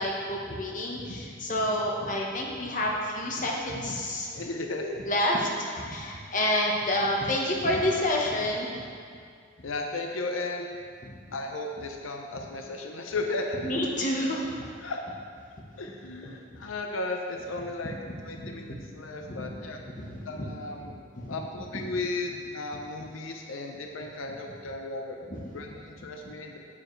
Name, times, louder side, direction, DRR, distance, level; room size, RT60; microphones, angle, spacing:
voice 1, 0.0-4.3 4.8-8.8 11.0-11.1 13.6-14.7 18.1-18.8 19.2-19.4 20.0-20.5 21.2-21.4 21.9-22.0 25.3-25.4, left 1 dB, 40° left, -2 dB, 1.1 m, -29 dB
voice 2, 4.3-4.9 9.6-10.7 11.3-13.6 14.8-15.2 15.8-17.9 18.2-19.8 20.3-21.0 21.3-25.2 25.5-26.6, left 2 dB, 90° left, 3 dB, 0.7 m, -35 dB
9.1 x 8.5 x 3.2 m, 2.2 s
head